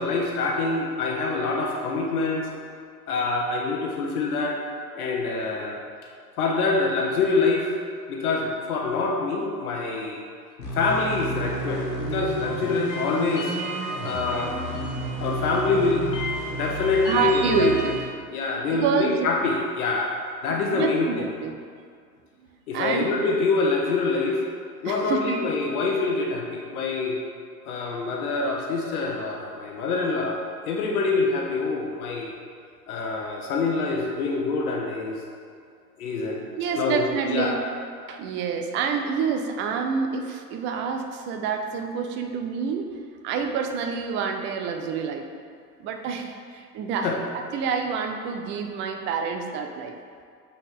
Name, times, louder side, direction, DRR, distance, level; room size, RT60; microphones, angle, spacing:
voice 1, 0.0-2.5 3.1-4.6 4.9-5.8 6.4-7.7 8.1-10.2 10.7-11.8 12.1-13.5 14.0-14.6 15.2-16.1 16.6-17.7 18.3-21.3 22.7-24.4 24.8-27.2 27.7-30.4 30.7-32.3 32.9-35.2 36.0-36.4 36.8-37.6 47.0-47.2, left 3 dB, 60° left, 0 dB, 1.1 m, -25 dB
sound 1, 10.6-18.0, right 1 dB, 85° left, 1.6 m, -31 dB
voice 2, 17.1-18.0 18.7-19.3 20.7-21.5 22.7-23.1 24.8-25.4 36.6-37.6 38.1-42.9 43.2-45.3 45.8-47.1 47.5-49.9, right 6 dB, 25° right, 4 dB, 0.5 m, -27 dB
7.9 x 4.6 x 3.6 m, 2.2 s
figure-of-eight pair, 90°, 49 cm